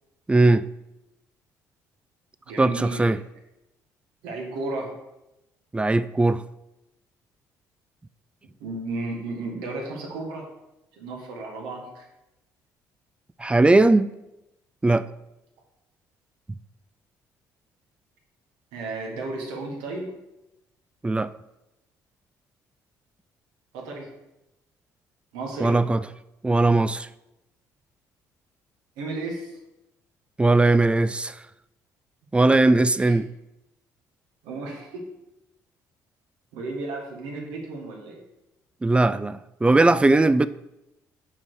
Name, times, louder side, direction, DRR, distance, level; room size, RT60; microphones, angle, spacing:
voice 1, 0.3-0.7 2.6-3.2 5.7-6.4 13.4-14.1 14.8-15.0 21.0-21.3 25.6-26.0 26.4-27.1 30.4-31.4 32.3-33.3 38.8-40.5, right 2 dB, 15° right, 0.3 m, -19 dB
voice 2, 2.5-3.1 4.2-4.9 8.6-10.5 11.0-12.0 18.7-20.1 23.7-24.1 25.3-25.8 29.0-29.5 33.0-33.1 34.4-35.1 36.5-38.2, right 2 dB, 85° right, 1.5 m, -33 dB
5.7 x 4.5 x 4.7 m
supercardioid pair, 70°, 8 cm